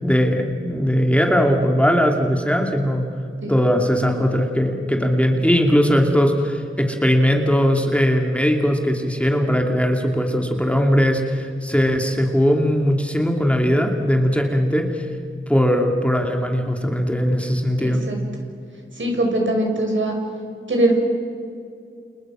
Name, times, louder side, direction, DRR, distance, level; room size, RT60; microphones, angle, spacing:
voice 1, 0.0-3.1 3.5-15.1 15.5-18.0, equal, 5° left, 2 dB, 2.6 m, -19 dB
voice 2, 17.8-18.2 19.0-20.1 20.7-21.0, right 1 dB, 65° right, 1 dB, 6.4 m, -21 dB
29.5 x 29.5 x 6.2 m, 2.4 s
wide cardioid pair, 85°, 21 cm